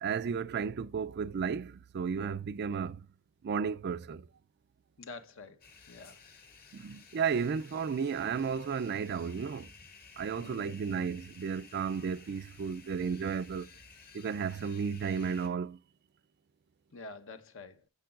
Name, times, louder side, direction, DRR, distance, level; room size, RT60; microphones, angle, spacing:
voice 1, 0.0-3.0 3.4-4.3 6.7-9.7 10.2-13.7 14.1-15.8, right 6 dB, 50° right, 0.4 m, -33 dB
voice 2, 5.0-6.2 10.4-10.7 16.9-17.8, left 3 dB, 60° left, 1.1 m, -48 dB
sound 1, 5.6-15.5, left 5 dB, 45° left, 1.9 m, -55 dB
10.5 x 7.0 x 2.4 m
head